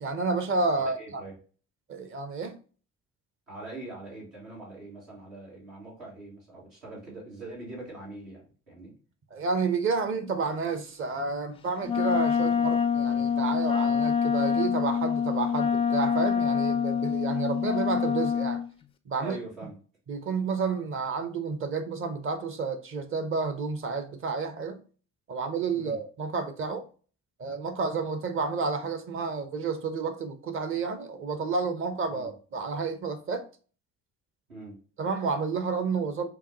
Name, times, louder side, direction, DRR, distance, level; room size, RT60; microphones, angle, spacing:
voice 1, 0.0-1.2 1.9-2.6 9.3-18.6 19.1-19.4 20.1-24.8 25.3-26.8 27.4-33.5 35.0-36.3, right 4 dB, 35° right, 0.8 m, -30 dB
voice 2, 0.8-1.3 3.5-8.9 19.2-19.8 25.7-26.0 32.1-32.3 34.5-34.8, right 2 dB, 75° right, 2.1 m, -43 dB
Wind instrument woodwind instrument, 11.8-18.7, left 7 dB, 15° left, 0.3 m, -26 dB
5.6 x 2.2 x 2.8 m
figure-of-eight pair, 45°, 37 cm